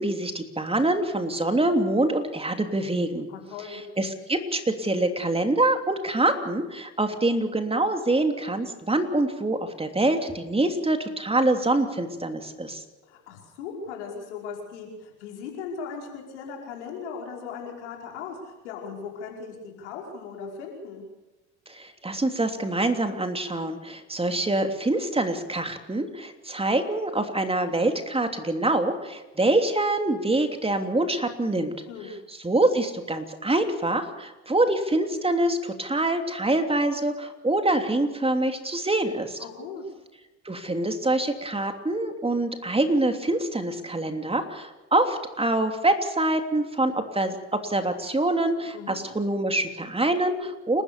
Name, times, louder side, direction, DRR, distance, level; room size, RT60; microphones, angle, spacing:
voice 1, 0.0-3.3 3.6-12.8 21.7-31.7 32.4-39.4 40.4-50.8, right 2 dB, 15° right, 6 dB, 3.1 m, -25 dB
voice 2, 3.3-3.8 13.0-21.0 31.9-32.1 39.4-39.9 48.7-49.0, left 5 dB, 90° left, 0 dB, 5.2 m, -38 dB
29.5 x 13.5 x 6.9 m, 1.1 s
hypercardioid pair, 65°, 34 cm